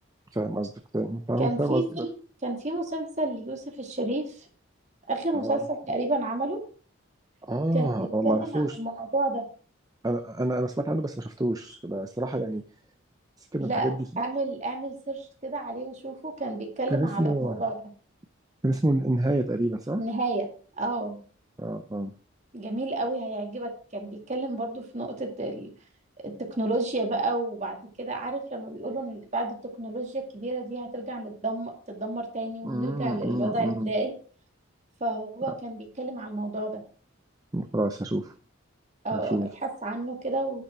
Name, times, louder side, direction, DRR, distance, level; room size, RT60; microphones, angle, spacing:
voice 1, 0.3-2.1 5.3-5.6 7.4-8.8 10.0-12.6 13.4-14.0 16.9-17.6 18.6-20.0 21.6-22.1 32.6-33.9 37.5-38.3 39.1-39.5, right 1 dB, 15° right, 7 dB, 0.6 m, -28 dB
voice 2, 1.4-2.1 2.4-4.3 5.1-6.6 7.7-9.4 13.6-13.9 14.2-17.8 20.0-20.5 20.8-21.2 22.5-25.7 26.2-34.1 35.0-36.8 39.0-39.4 39.6-40.6, right 2 dB, 35° right, 3 dB, 2.2 m, -31 dB
10.5 x 5.8 x 6.0 m, 0.42 s
head